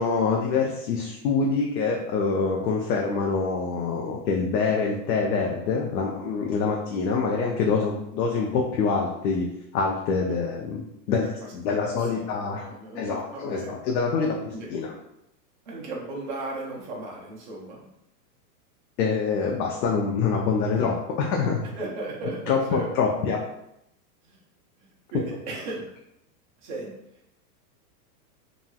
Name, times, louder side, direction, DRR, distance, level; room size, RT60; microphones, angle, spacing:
voice 1, 0.0-9.5 9.7-10.8 11.1-11.3 11.5-12.7 12.9-14.9 19.0-21.6 22.5-23.4, left 5 dB, 85° left, 0 dB, 0.7 m, -25 dB
voice 2, 11.1-11.8 12.2-13.8 14.5-14.7 15.7-17.9 21.8-22.9 24.2-24.4 24.8-25.8 26.6-26.9, right 2 dB, 30° right, -3 dB, 0.5 m, -36 dB
3.0 x 2.6 x 2.2 m, 0.81 s
supercardioid pair, 165°, 49 cm